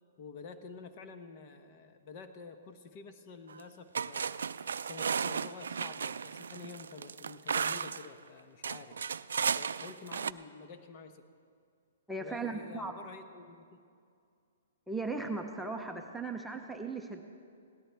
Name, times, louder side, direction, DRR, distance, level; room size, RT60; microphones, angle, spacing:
voice 1, 0.2-4.4 4.9-9.0 9.5-11.3 12.2-13.8, left 5 dB, 40° left, 8 dB, 1.0 m, -49 dB
sound 1, 3.5-3.6 3.9-8.1 8.6-10.3, right 6 dB, 85° right, 0.3 m, -34 dB
voice 2, 12.1-12.9 14.9-17.2, right 3 dB, ahead, 2 dB, 0.7 m, -37 dB
17.5 x 13.0 x 3.5 m, 2.3 s
hypercardioid pair, 140°, 0 cm